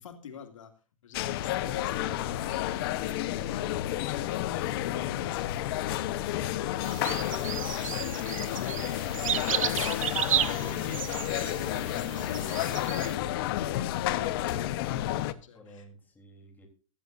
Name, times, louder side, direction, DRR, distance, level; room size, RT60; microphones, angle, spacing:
voice 1, 0.0-10.1 10.6-15.9, left 7 dB, 75° left, 2.5 m, -47 dB
sound 1, 1.1-15.3, left 13 dB, 45° left, 1.0 m, -31 dB
sound 2, 6.8-13.1, right 11 dB, 85° right, 0.6 m, -33 dB
voice 2, 10.1-12.1 15.5-16.7, left 3 dB, 10° left, 3.5 m, -47 dB
15.5 x 13.5 x 2.6 m
hypercardioid pair, 145°, 17 cm